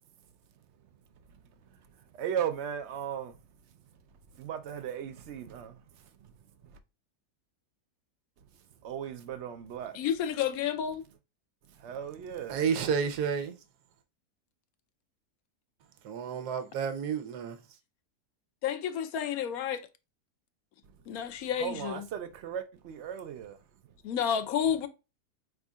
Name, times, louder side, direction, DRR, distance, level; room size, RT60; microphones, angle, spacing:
voice 1, 2.1-3.3 4.4-5.8 8.8-10.0 11.8-12.6 21.6-23.6, right 9 dB, 65° right, 0.7 m, -36 dB
voice 2, 9.9-11.0 18.6-19.9 21.1-22.1 24.0-24.9, left 9 dB, 70° left, 1.0 m, -30 dB
voice 3, 12.5-13.5 16.0-17.6, right 6 dB, 90° right, 1.3 m, -30 dB
5.0 x 3.6 x 2.3 m
omnidirectional pair, 1.6 m